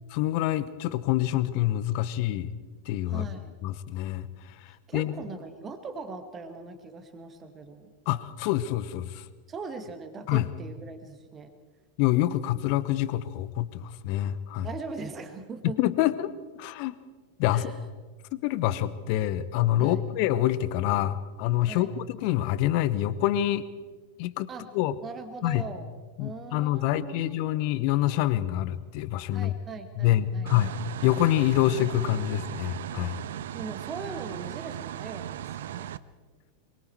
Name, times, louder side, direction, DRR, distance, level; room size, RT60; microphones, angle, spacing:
voice 1, 0.1-2.5 2.9-3.2 3.6-4.3 4.9-5.2 8.1-9.2 10.3-10.5 12.0-14.7 15.8-16.3 16.6-16.9 17.4-17.7 18.3-23.6 24.2-24.5 24.7-24.9 25.4-25.7 26.2-29.5 30.0-30.7 31.0-33.1, left 13 dB, 45° left, 16 dB, 1.0 m, -26 dB
voice 2, 3.1-3.6 4.7-7.9 9.5-11.5 14.6-15.8 17.5-17.8 19.8-20.0 21.6-22.0 24.5-24.7 25.0-25.9 26.2-27.5 29.3-30.6 33.5-35.9, right 4 dB, 25° right, 6 dB, 1.9 m, -40 dB
sound 1, 30.5-36.0, right 11 dB, 60° right, 0.6 m, -37 dB
24.5 x 22.5 x 4.7 m, 1.3 s
figure-of-eight pair, 90°, 0 cm